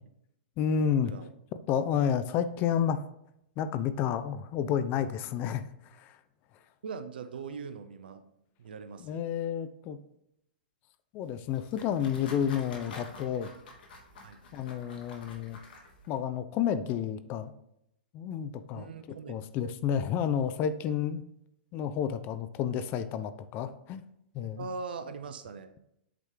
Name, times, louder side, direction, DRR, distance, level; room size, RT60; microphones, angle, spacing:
voice 1, 0.6-1.1 1.7-3.0 3.6-5.6 6.0-6.2 9.0-10.0 11.1-13.5 14.5-15.6 16.1-17.5 18.1-18.9 19.3-21.2 21.7-24.0 24.3-24.7, left 8 dB, 35° left, 12 dB, 0.4 m, -30 dB
voice 2, 6.8-8.2 8.6-9.2 14.2-14.4 18.7-19.3 24.6-25.7, right 5 dB, 70° right, 10 dB, 0.6 m, -41 dB
sound 1, 11.2-16.2, left 3 dB, 65° left, 1.4 m, -49 dB
8.1 x 3.2 x 3.7 m, 0.79 s
hypercardioid pair, 115°, 5 cm